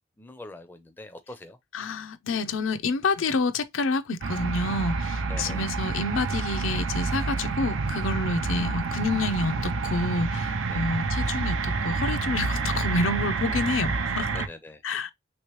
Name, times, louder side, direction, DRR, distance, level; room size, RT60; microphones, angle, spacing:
voice 1, 0.2-1.6 5.3-5.6 10.7-10.9 13.4-14.0 14.3-14.8, left 1 dB, 10° left, 0.4 m, -44 dB
voice 2, 1.7-14.5 14.8-15.1, left 3 dB, 90° left, 0.5 m, -28 dB
sound 1, 4.2-14.5, right 4 dB, 85° right, 0.5 m, -28 dB
3.2 x 3.0 x 3.1 m
head